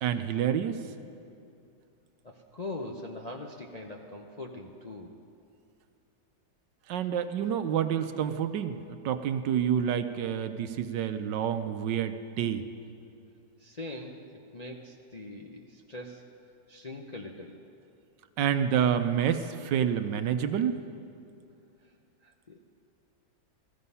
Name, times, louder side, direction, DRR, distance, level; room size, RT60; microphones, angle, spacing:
voice 1, 0.0-0.8 6.9-12.7 18.4-20.8, right 9 dB, 75° right, 9 dB, 1.4 m, -28 dB
voice 2, 2.2-5.2 13.6-16.2 16.7-17.6 22.2-22.6, left 2 dB, 35° left, 0 dB, 0.6 m, -42 dB
16.5 x 14.5 x 5.6 m, 2.5 s
omnidirectional pair, 2.0 m